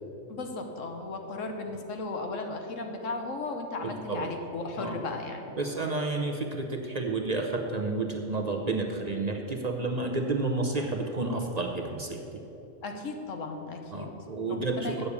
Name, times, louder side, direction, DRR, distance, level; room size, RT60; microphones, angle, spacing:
voice 1, 0.3-5.4 12.8-14.1 14.4-15.0, left 3 dB, 85° left, 4 dB, 1.4 m, -36 dB
voice 2, 5.6-12.4 13.9-15.1, right 3 dB, 40° right, 2 dB, 0.7 m, -30 dB
8.5 x 6.6 x 8.3 m, 2.9 s
omnidirectional pair, 1.3 m